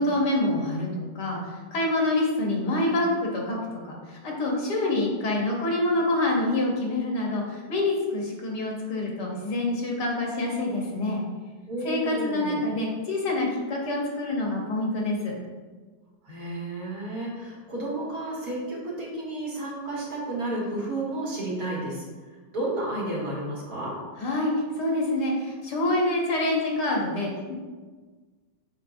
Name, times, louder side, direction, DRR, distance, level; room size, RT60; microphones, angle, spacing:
voice 1, 0.0-3.6 3.8-11.2 11.8-15.3 24.2-27.5, left 2 dB, 65° left, -1 dB, 1.6 m, -26 dB
voice 2, 11.7-12.6 16.2-22.0 22.5-24.0, right 1 dB, 55° right, -6 dB, 2.2 m, -32 dB
7.7 x 5.3 x 2.6 m, 1.4 s
omnidirectional pair, 2.0 m